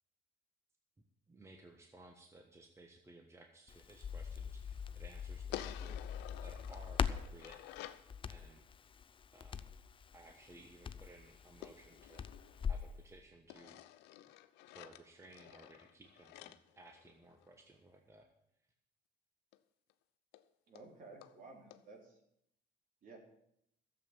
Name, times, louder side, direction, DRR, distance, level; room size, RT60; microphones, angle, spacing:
voice 1, 1.3-7.6 8.3-8.6 9.3-9.6 10.1-12.3 12.7-13.8 14.7-18.3, right 2 dB, 15° right, 4 dB, 1.2 m, -59 dB
Crackle, 3.7-12.9, left 7 dB, 30° left, 0.5 m, -42 dB
sound 1, 5.5-8.1 11.6-13.0 13.5-17.6 19.5-19.6 19.9-20.0 20.3-20.4 20.8-20.9 21.2-21.3 21.7-21.8, left 14 dB, 90° left, 0.7 m, -51 dB
voice 2, 20.7-22.2 23.0-23.2, right 3 dB, 55° right, 1 dB, 3.5 m, -54 dB
13.0 x 7.5 x 7.4 m, 0.75 s
cardioid pair, 110°, 17 cm